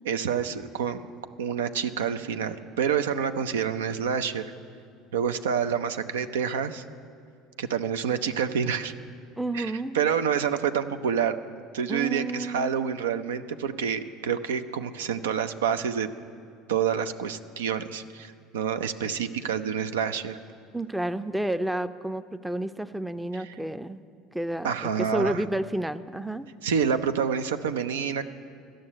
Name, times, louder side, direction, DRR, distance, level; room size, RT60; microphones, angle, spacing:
voice 1, 0.0-1.1 1.4-4.4 5.1-6.8 7.6-8.9 9.5-11.4 11.7-16.1 16.7-20.4 23.3-23.5 24.6-25.4 26.6-28.2, right 7 dB, 90° right, 9 dB, 0.4 m, -28 dB
voice 2, 9.4-10.0 11.9-12.8 20.7-24.0 24.3-26.5, right 1 dB, 5° right, 12 dB, 0.4 m, -30 dB
12.5 x 6.3 x 9.7 m, 2.3 s
hypercardioid pair, 85°, 0 cm